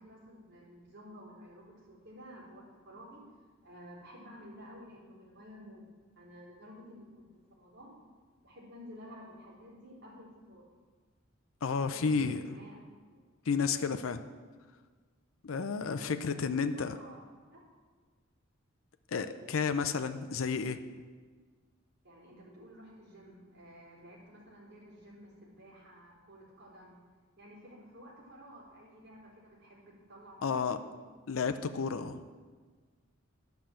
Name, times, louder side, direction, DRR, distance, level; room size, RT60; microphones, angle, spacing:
voice 1, 0.0-3.2 3.6-5.9 6.2-7.3 7.6-7.9 8.4-10.7 11.7-12.7 13.1-13.2 16.0-17.2 17.5-17.6 22.0-27.0 27.4-30.4 30.8-30.9, equal, 60° right, -5 dB, 3.8 m, -52 dB
voice 2, 11.6-12.4 13.5-14.2 15.4-17.0 19.1-20.8 30.4-30.8 31.3-32.2, left 5 dB, 80° left, 9 dB, 0.5 m, -31 dB
11.5 x 5.8 x 7.6 m, 1.5 s
head